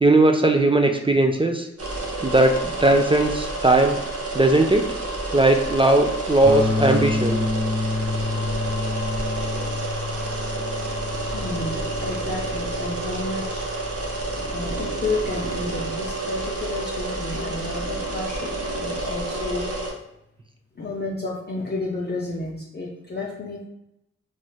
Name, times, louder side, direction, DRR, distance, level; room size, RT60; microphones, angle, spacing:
voice 1, 0.0-1.7 2.2-4.0 4.3-4.9 5.3-7.4, right 2 dB, 20° right, 3 dB, 0.3 m, -18 dB
sound 1, 1.8-19.9, right 2 dB, 55° right, 0.7 m, -30 dB
Clean A str pick, 6.4-16.4, left 2 dB, 15° left, 1.0 m, -30 dB
voice 2, 11.3-13.6 14.5-18.5 18.8-19.6 20.8-23.6, left 2 dB, 35° left, -3 dB, 0.5 m, -31 dB
3.2 x 3.0 x 2.2 m, 0.84 s
wide cardioid pair, 60°, 29 cm